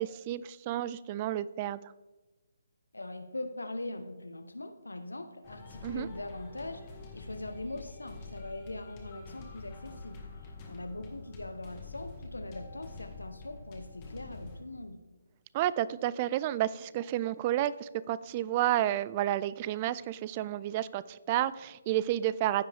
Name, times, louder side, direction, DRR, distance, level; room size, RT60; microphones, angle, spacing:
voice 1, 0.0-1.8 5.8-6.1 15.5-22.6, right 13 dB, 30° right, 18 dB, 0.3 m, -31 dB
voice 2, 2.9-6.8 7.1-15.0, left 2 dB, 85° left, 8 dB, 1.0 m, -41 dB
sound 1, 5.4-14.6, left 3 dB, 30° left, 1.8 m, -46 dB
15.0 x 5.1 x 3.5 m, 1.1 s
figure-of-eight pair, 145°, 0 cm